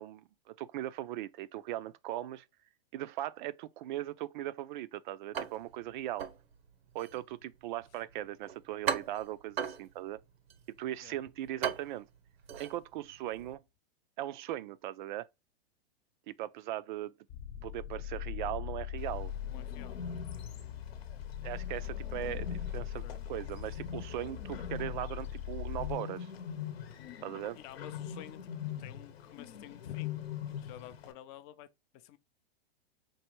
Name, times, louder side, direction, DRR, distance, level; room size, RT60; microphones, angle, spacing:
voice 1, 0.0-2.4 2.9-6.3 6.9-10.2 10.8-12.1 12.6-13.6 14.2-15.3 16.3-17.1 17.6-19.3 21.4-26.3 27.2-27.6, right 13 dB, 55° right, 0.4 m, -39 dB
sound 1, 5.3-13.6, right 7 dB, 80° right, 0.9 m, -40 dB
sound 2, 17.3-25.9, left 10 dB, 50° left, 0.8 m, -40 dB
Bird, 19.0-31.1, left 8 dB, 90° left, 0.8 m, -43 dB
voice 2, 19.5-20.0 23.0-23.3 27.6-30.2 30.6-32.2, left 12 dB, 30° left, 0.4 m, -51 dB
4.6 x 2.5 x 3.0 m
hypercardioid pair, 140°, 30 cm